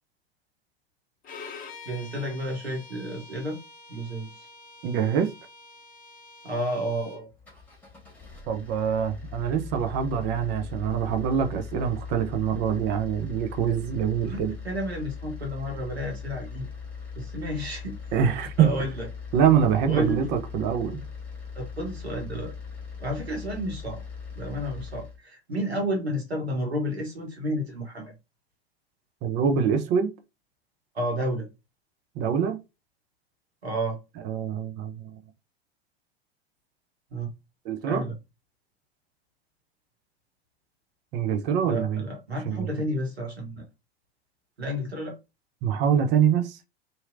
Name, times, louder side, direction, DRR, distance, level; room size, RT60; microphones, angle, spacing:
Bowed string instrument, 1.2-7.2, left 4 dB, 25° left, 0.7 m, -46 dB
voice 1, 1.8-3.6 3.9-4.3 6.4-7.3 14.2-16.7 17.2-18.0 18.6-19.1 19.9-20.3 21.5-22.5 23.0-24.0 24.4-28.1 30.9-31.5 33.6-34.0 37.1-37.3 37.9-38.1 41.6-43.6 44.6-45.2, equal, 85° right, 1.1 m, -31 dB
voice 2, 4.8-5.3 8.5-14.5 18.1-18.7 19.3-21.0 29.2-30.1 32.2-32.6 34.3-35.0 37.6-38.0 41.1-42.0 42.5-42.7 45.6-46.7, right 8 dB, 35° right, 0.6 m, -24 dB
sound 1, 7.3-25.2, left 5 dB, 5° left, 1.5 m, -40 dB
2.8 x 2.6 x 2.5 m
figure-of-eight pair, 85°, 31 cm